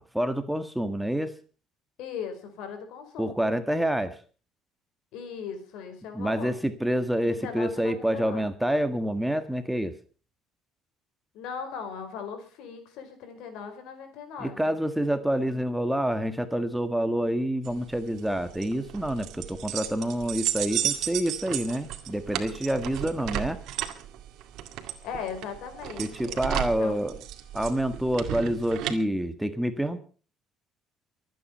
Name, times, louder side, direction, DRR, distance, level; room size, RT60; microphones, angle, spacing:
voice 1, 0.0-1.3 3.2-4.2 6.1-9.9 14.4-23.6 26.0-27.1 27.5-30.0, right 1 dB, 5° right, 9 dB, 1.6 m, -27 dB
voice 2, 2.0-3.5 5.1-6.6 7.2-8.5 11.3-14.7 25.0-27.0, left 6 dB, 75° left, 8 dB, 4.8 m, -39 dB
sound 1, 17.6-29.0, right 12 dB, 70° right, 2.1 m, -34 dB
24.0 x 9.3 x 5.6 m, 0.39 s
cardioid pair, 110°, 0 cm